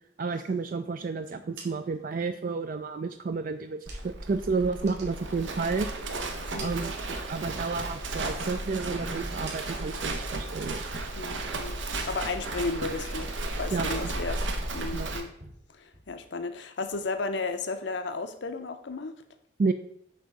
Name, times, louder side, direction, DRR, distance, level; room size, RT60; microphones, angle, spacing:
voice 1, 0.2-5.9 6.6-10.8 13.7-14.1 14.9-15.1 19.6-19.7, right 4 dB, 45° right, 8 dB, 0.3 m, -31 dB
sound 1, 1.4-4.3 4.7-6.0 6.3-7.6 8.0-10.1 10.5-10.9 11.3-12.6 12.9-13.5 13.7-16.6, right 4 dB, 60° right, 2.1 m, -52 dB
Livestock farm animals working animals, 3.9-15.2, right 2 dB, 80° right, 1.0 m, -34 dB
voice 2, 11.2-11.8 12.1-14.4 14.7-15.3 15.7-19.1, left 3 dB, 70° left, 8 dB, 0.6 m, -34 dB
7.5 x 3.5 x 6.4 m, 0.70 s
head